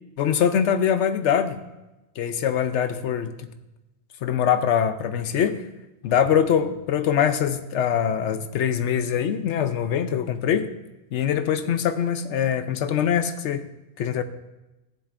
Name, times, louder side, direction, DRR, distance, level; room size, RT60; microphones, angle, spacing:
voice 1, 0.2-1.6 2.2-3.5 4.2-5.6 6.0-10.7 11.1-13.6 14.0-14.2, left 8 dB, 75° left, 9 dB, 1.0 m, -23 dB
14.5 x 10.5 x 2.5 m, 1.0 s
omnidirectional pair, 1.2 m